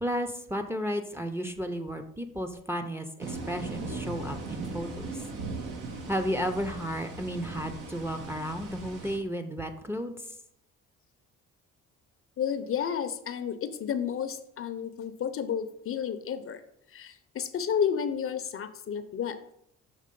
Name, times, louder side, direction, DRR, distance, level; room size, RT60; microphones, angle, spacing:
voice 1, 0.0-5.2 6.1-10.2, equal, 10° right, 5 dB, 0.5 m, -33 dB
sound 1, 3.2-9.2, right 3 dB, 85° right, 1.1 m, -38 dB
voice 2, 12.4-16.6 16.9-19.4, left 8 dB, 45° left, 11 dB, 0.5 m, -31 dB
6.6 x 3.0 x 5.2 m, 0.72 s
cardioid pair, 90°, 30 cm